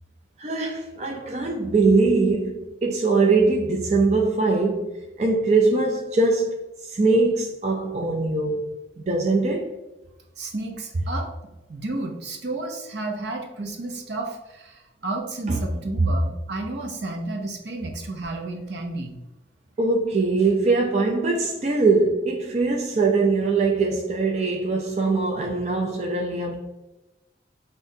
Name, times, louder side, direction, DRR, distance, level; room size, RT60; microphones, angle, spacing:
voice 1, 0.4-6.5 6.9-9.7 15.5-15.6 19.8-26.6, right 3 dB, 35° right, 0.4 m, -22 dB
voice 2, 10.4-11.3 11.7-14.3 14.6-14.7 15.0-19.1, right 2 dB, 75° right, 0.7 m, -31 dB
5.6 x 2.6 x 2.6 m
head